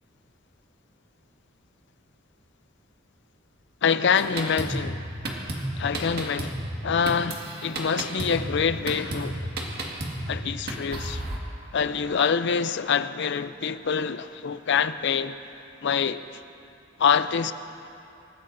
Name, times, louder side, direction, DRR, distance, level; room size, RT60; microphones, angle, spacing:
voice 1, 3.8-5.1 5.8-9.5 10.3-11.2 11.7-15.4 15.8-16.2 17.0-17.5, left 6 dB, 60° left, 0.5 m, -25 dB
Drum kit, 4.1-11.4, right 1 dB, 55° right, 1.8 m, -33 dB
26.5 x 15.0 x 2.7 m
head